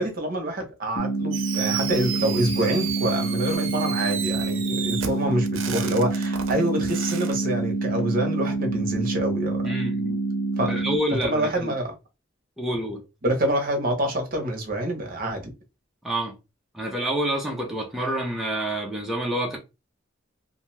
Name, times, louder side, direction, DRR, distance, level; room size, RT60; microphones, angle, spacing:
voice 1, 0.0-9.6 10.6-10.8 11.2-11.9 13.2-15.5, right 1 dB, 45° right, 0.8 m, -26 dB
sound 1, 1.0-11.0, right 2 dB, 40° left, 0.6 m, -27 dB
Fireworks, 1.3-7.4, right 8 dB, 85° right, 0.5 m, -32 dB
voice 2, 9.6-10.2 10.7-11.7 12.6-13.0 16.0-16.3 16.7-19.6, right 1 dB, ahead, 0.4 m, -28 dB
2.5 x 2.2 x 3.1 m
head